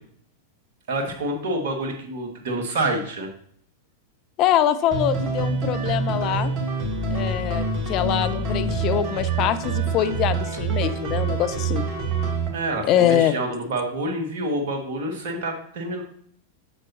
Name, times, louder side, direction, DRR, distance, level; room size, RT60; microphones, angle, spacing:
voice 1, 0.9-3.3 12.5-16.0, right 1 dB, 55° right, 3 dB, 1.8 m, -27 dB
voice 2, 4.4-6.5 7.1-11.9 12.8-13.3, left 10 dB, 40° left, 11 dB, 0.5 m, -23 dB
sound 1, 4.9-12.5, right 4 dB, 40° right, 1.5 m, -26 dB
8.5 x 6.7 x 2.8 m, 0.62 s
figure-of-eight pair, 95°, 0 cm